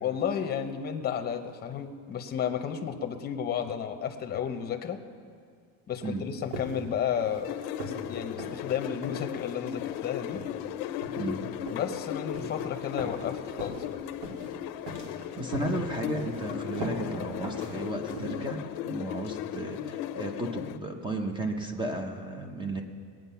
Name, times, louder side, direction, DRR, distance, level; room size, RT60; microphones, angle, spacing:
voice 1, 0.0-5.0 5.9-7.5 8.1-10.4 11.7-14.0, left 8 dB, 25° left, 5 dB, 0.8 m, -32 dB
sound 1, 6.5-6.9 7.2-7.4 7.8-8.0 8.4-8.6 9.0-9.2 9.7-9.9 10.3-10.5 11.0-11.3 11.7-11.9 12.3-12.6 13.0-13.2 13.6-13.8 14.2-14.5 14.9-15.2 15.5-15.8 16.2-16.4 16.8-17.1 17.4-17.7 18.1-18.3, right 1 dB, 80° right, 3.2 m, -38 dB
sound 2, 7.4-20.8, left 11 dB, 80° left, 0.7 m, -36 dB
voice 2, 11.2-11.5 15.4-18.6 18.8-22.8, right 2 dB, 15° right, 4 dB, 0.8 m, -34 dB
20.0 x 9.1 x 5.7 m, 2.2 s
cardioid pair, 170°, 35 cm